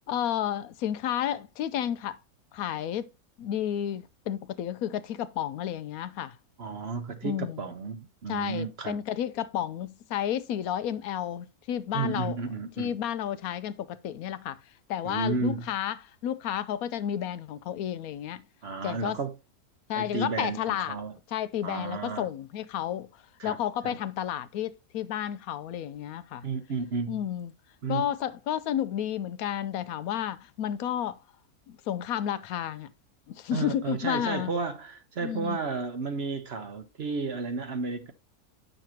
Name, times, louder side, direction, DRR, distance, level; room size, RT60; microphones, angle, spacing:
voice 1, 0.1-2.2 2.5-3.1 3.4-6.4 7.2-7.6 8.3-12.4 12.8-14.6 14.9-18.4 18.8-19.2 19.9-21.0 21.3-23.1 23.4-26.5 27.1-27.5 27.9-31.2 31.7-32.9 33.3-34.5 35.2-35.6, left 10 dB, 75° left, 1.0 m, -31 dB
voice 2, 6.6-9.0 11.9-12.9 15.0-15.6 18.6-19.3 19.9-20.6 20.9-21.1 21.6-22.3 23.4-23.6 23.8-24.0 26.4-27.2 27.8-28.1 33.5-38.1, right 4 dB, 50° right, 0.9 m, -32 dB
9.0 x 6.6 x 2.8 m
omnidirectional pair, 1.6 m